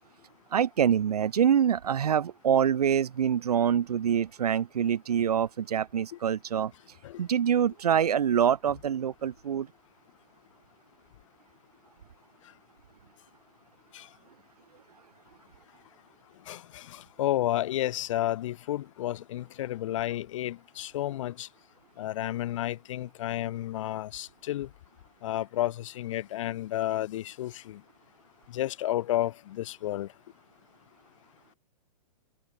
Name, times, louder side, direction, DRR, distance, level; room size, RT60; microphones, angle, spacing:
voice 1, 0.5-6.7 7.2-9.7, right 8 dB, 85° right, 1.2 m, -25 dB
voice 2, 16.5-21.5 22.0-24.7 25.2-27.8 28.5-30.1, left 14 dB, 55° left, 1.1 m, -31 dB
hypercardioid pair, 145°, 19 cm